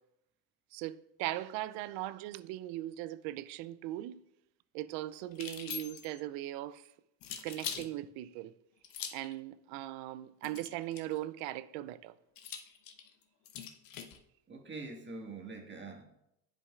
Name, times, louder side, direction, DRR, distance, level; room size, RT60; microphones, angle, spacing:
voice 1, 0.7-4.2 4.7-6.9 7.4-8.5 9.1-12.1, right 15 dB, 65° right, 0.5 m, -39 dB
sound 1, 5.3-6.2 7.2-7.9 8.8-9.3 10.4-11.2 12.4-14.2, left 8 dB, 45° left, 1.0 m, -43 dB
voice 2, 14.5-16.0, right 3 dB, 25° right, 1.7 m, -44 dB
11.0 x 5.1 x 2.4 m
hypercardioid pair, 85°, 47 cm